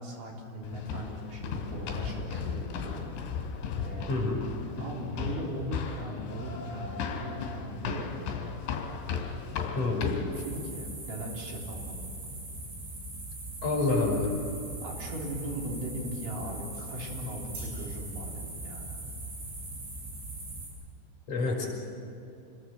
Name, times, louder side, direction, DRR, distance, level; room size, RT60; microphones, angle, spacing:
voice 1, 0.0-3.1 3.8-4.2 4.8-8.4 10.5-12.1 14.8-19.0 21.5-21.7, equal, 45° right, -1 dB, 5.0 m, -38 dB
sound 1, 0.6-10.4, left 6 dB, 70° left, 4.8 m, -36 dB
voice 2, 4.1-4.4 9.7-10.2 13.6-14.3 21.3-21.7, left 3 dB, 40° left, -1 dB, 6.6 m, -27 dB
sound 2, 10.3-20.7, right 2 dB, 65° right, 10.0 m, -40 dB
27.0 x 21.0 x 7.9 m, 2.9 s
omnidirectional pair, 5.6 m